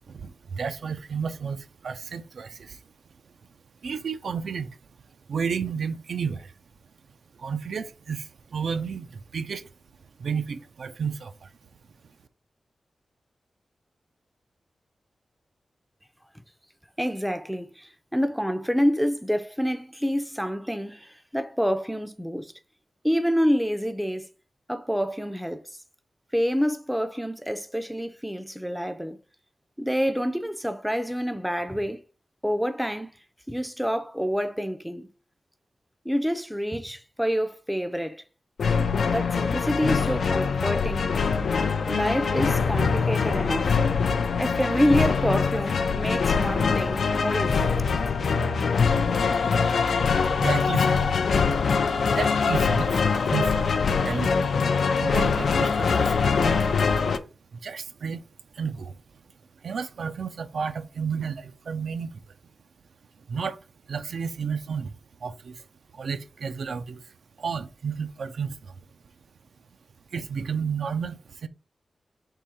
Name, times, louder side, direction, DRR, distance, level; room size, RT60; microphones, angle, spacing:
voice 1, 0.1-2.8 3.2-3.3 3.8-4.8 5.3-6.5 7.3-9.7 10.2-11.5 50.4-51.1 52.0-53.5 54.0-54.6 55.0-56.7 57.5-58.3 58.5-59.2 59.5-62.3 63.3-65.7 65.9-68.7 70.1-71.5, right 6 dB, 85° right, 0.4 m, -32 dB
voice 2, 17.0-22.5 23.0-24.3 24.7-25.6 26.3-29.2 29.8-32.0 32.4-33.1 33.5-35.1 36.1-38.2 39.1-41.1 41.9-43.7 44.4-47.7, equal, ahead, 0.4 m, -27 dB
sound 1, 38.6-57.2, left 5 dB, 80° left, 0.4 m, -23 dB
3.8 x 3.0 x 4.2 m
wide cardioid pair, 90°, 0 cm